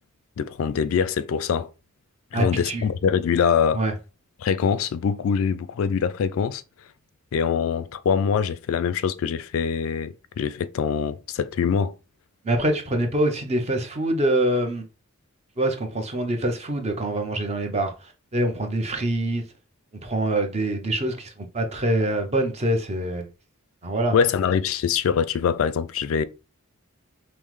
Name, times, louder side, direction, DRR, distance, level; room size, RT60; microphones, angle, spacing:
voice 1, 0.4-1.7 2.3-3.8 4.4-6.6 7.3-11.9 24.1-26.2, left 6 dB, 65° left, 0.3 m, -24 dB
voice 2, 2.3-2.9 3.7-3.9 12.4-14.9 15.6-19.4 20.0-23.3 23.8-24.1, right 1 dB, 30° right, 0.6 m, -25 dB
5.4 x 2.0 x 3.1 m
head